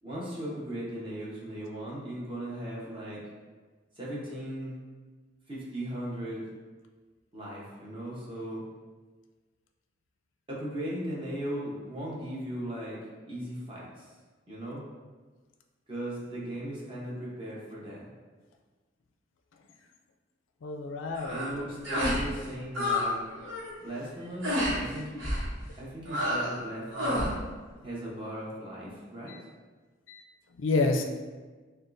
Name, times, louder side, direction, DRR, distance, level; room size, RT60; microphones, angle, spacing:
voice 1, 0.0-3.2 3.9-4.8 5.5-6.5 7.3-8.6 10.5-14.1 14.5-14.8 15.9-18.1 21.3-23.2 23.8-27.3 27.8-29.4, right 1 dB, 25° right, -6 dB, 1.0 m, -38 dB
voice 2, 20.6-21.3 29.3-29.4 30.1-30.2 30.5-31.0, left 3 dB, 80° left, 4 dB, 0.4 m, -28 dB
sound 1, 21.1-21.5 21.8-22.2 22.5-23.1 23.4-23.7 24.4-24.8 25.2-25.5 26.1-26.6 26.9-27.3, left 1 dB, 90° right, 1.2 m, -29 dB
6.2 x 2.4 x 2.6 m, 1.4 s
head